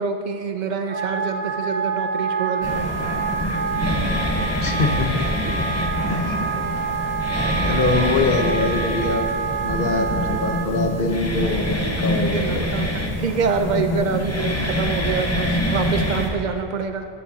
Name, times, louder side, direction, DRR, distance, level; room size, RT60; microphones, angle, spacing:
voice 1, 0.0-2.9 5.6-5.7 6.1-6.2 12.3-17.1, right 5 dB, 50° right, 7 dB, 0.7 m, -26 dB
Wind instrument woodwind instrument, 0.8-10.7, right 5 dB, 70° right, 2.3 m, -27 dB
sound 1, 2.6-16.3, equal, 15° left, 1.0 m, -25 dB
voice 2, 4.6-5.1 6.1-6.4 7.6-9.3 9.6-12.7, left 2 dB, 60° left, 4 dB, 1.1 m, -23 dB
13.5 x 11.0 x 2.8 m, 2.5 s
omnidirectional pair, 1.1 m